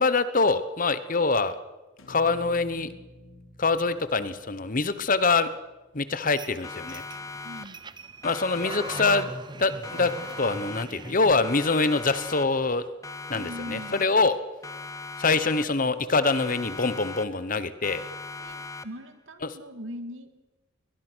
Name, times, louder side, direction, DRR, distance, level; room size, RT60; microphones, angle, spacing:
voice 1, 0.0-1.6 2.1-2.9 3.6-5.5 5.9-7.0 8.2-9.3 9.5-10.1 10.4-12.8 13.3-14.4 15.2-18.0 19.4-19.5, left 3 dB, 40° left, 14 dB, 1.0 m, -24 dB
sound 1, 2.0-6.2, left 1 dB, 80° left, 3.5 m, -50 dB
sound 2, 6.4-11.3, right 3 dB, 20° right, 0.6 m, -40 dB
Siren, 6.6-8.0 8.2-9.6 9.8-11.2 11.4-12.8 13.0-14.4 14.6-16.0 16.2-17.6 17.8-19.2, left 3 dB, 15° left, 0.8 m, -40 dB
voice 2, 7.4-7.8 13.3-14.0 18.4-20.3, equal, 70° right, 9 dB, 2.2 m, -40 dB
22.0 x 20.5 x 6.2 m, 1.1 s
head